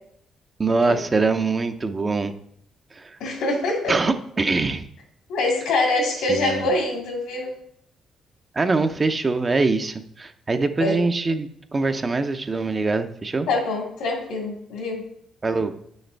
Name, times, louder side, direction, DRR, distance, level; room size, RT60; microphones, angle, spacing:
voice 1, 0.6-2.3 3.0-3.1 3.9-4.8 6.3-6.7 8.6-13.5 15.4-15.7, right 3 dB, 30° right, 7 dB, 0.7 m, -23 dB
voice 2, 3.2-4.0 5.3-7.6 10.8-11.0 13.5-15.0, left 2 dB, 85° left, 1 dB, 2.3 m, -24 dB
8.8 x 6.5 x 3.4 m, 0.69 s
cardioid pair, 90°, 0 cm